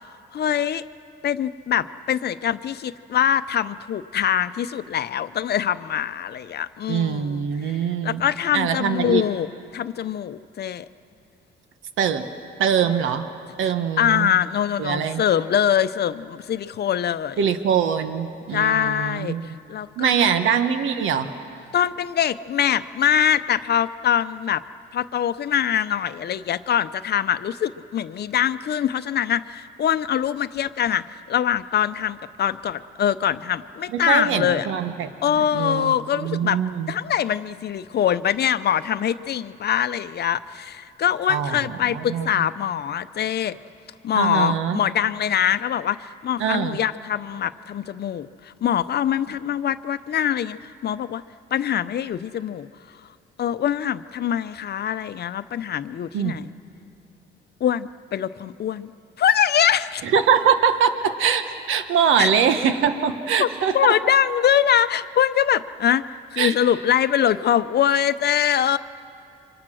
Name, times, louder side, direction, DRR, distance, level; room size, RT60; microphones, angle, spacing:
voice 1, 0.3-0.8 1.2-9.5 9.7-10.9 14.0-17.5 18.5-20.1 21.7-24.6 24.9-34.7 35.2-36.6 36.9-43.6 44.0-51.2 51.5-52.7 53.4-56.5 57.6-58.9 59.2-60.0 62.2-62.3 63.4-63.5 63.7-68.8, left 9 dB, 55° left, 13 dB, 0.7 m, -23 dB
voice 2, 6.9-8.2 8.5-9.2 12.0-12.3 12.6-13.3 13.6-14.3 14.8-15.2 17.4-19.5 20.0-21.3 33.9-35.1 35.4-35.9 36.2-36.9 41.3-42.5 44.1-44.8 46.4-46.8 56.1-56.4 60.0-63.9 66.4-66.5, right 7 dB, 85° right, 9 dB, 1.3 m, -23 dB
29.5 x 25.0 x 6.3 m, 2.6 s
cardioid pair, 90°, 20 cm